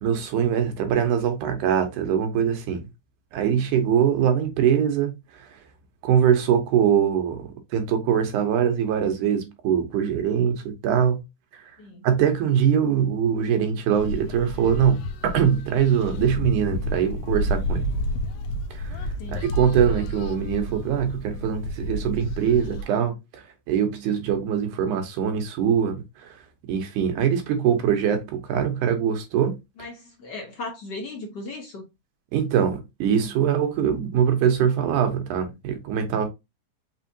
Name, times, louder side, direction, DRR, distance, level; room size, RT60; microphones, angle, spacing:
voice 1, 0.0-2.8 3.3-5.1 5.4-5.5 6.0-11.2 12.0-17.9 18.7-26.4 26.7-29.6 32.3-36.3, right 8 dB, 85° right, 2.5 m, -23 dB
sound 1, 14.0-22.8, left 1 dB, 80° left, 1.5 m, -30 dB
voice 2, 29.8-31.8, left 2 dB, 65° left, 1.1 m, -37 dB
5.5 x 3.5 x 2.7 m
omnidirectional pair, 3.5 m